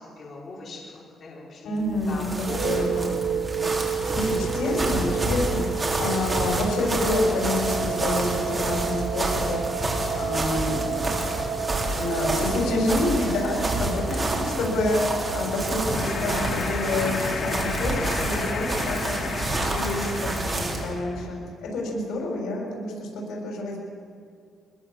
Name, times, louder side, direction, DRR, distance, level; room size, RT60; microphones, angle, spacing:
voice 1, 0.2-2.7 2.9-3.1 12.6-12.8 13.9-14.0, left 3 dB, 40° left, -4 dB, 5.3 m, -40 dB
voice 2, 1.6-3.1 4.1-9.6 10.2-11.2 11.9-19.2 19.6-23.8, left 2 dB, 85° left, 0 dB, 7.0 m, -28 dB
sound 1, 1.8-20.9, right 2 dB, 20° right, 3.7 m, -29 dB
sound 2, 2.5-20.9, right 6 dB, 55° right, 2.5 m, -32 dB
sound 3, 15.8-21.3, left 4 dB, 60° left, 3.8 m, -32 dB
24.5 x 20.5 x 7.8 m, 2.3 s
cardioid pair, 160°, 0 cm